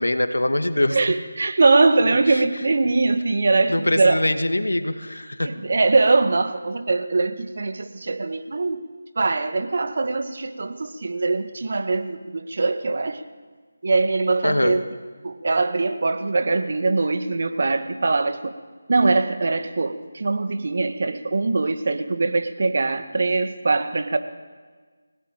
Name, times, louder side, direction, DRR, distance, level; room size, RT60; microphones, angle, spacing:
voice 1, 0.0-1.0 2.3-2.4 3.7-5.6 14.4-14.8, left 1 dB, 80° left, 8 dB, 2.1 m, -23 dB
voice 2, 0.9-4.2 5.4-8.8 9.2-13.2 13.8-14.8 15.2-18.5 18.9-24.2, right 3 dB, 55° right, 8 dB, 1.8 m, -22 dB
25.0 x 17.5 x 9.0 m, 1.5 s
figure-of-eight pair, 160°, 0 cm